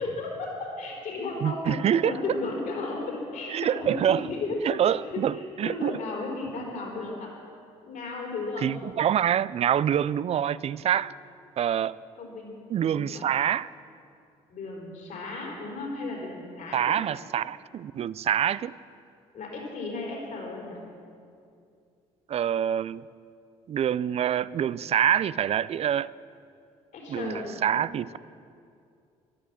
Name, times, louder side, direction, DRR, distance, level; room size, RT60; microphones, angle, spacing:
voice 1, 0.0-7.3 7.9-8.8 10.9-11.1 12.2-13.3 14.5-17.0 19.3-20.8 26.9-27.8, left 3 dB, 65° left, -1 dB, 4.2 m, -35 dB
voice 2, 1.4-2.1 3.5-4.3 4.6-6.0 8.6-11.2 11.6-12.0 12.7-13.7 16.7-18.7 22.3-23.0 23.7-26.1 27.1-28.2, right 9 dB, 45° right, 19 dB, 0.4 m, -26 dB
13.5 x 11.0 x 7.5 m, 2.4 s
supercardioid pair, 70°, 14 cm